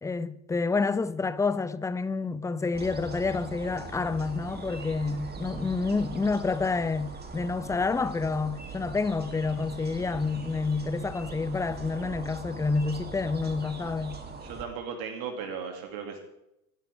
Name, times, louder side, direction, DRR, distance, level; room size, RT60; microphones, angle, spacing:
voice 1, 0.0-14.2, left 4 dB, 5° left, 0.7 m, -29 dB
sound 1, 2.7-14.6, right 4 dB, 20° right, 3.1 m, -41 dB
voice 2, 14.4-16.2, right 6 dB, 50° right, 2.8 m, -36 dB
27.0 x 13.0 x 3.6 m
figure-of-eight pair, 75°, 45 cm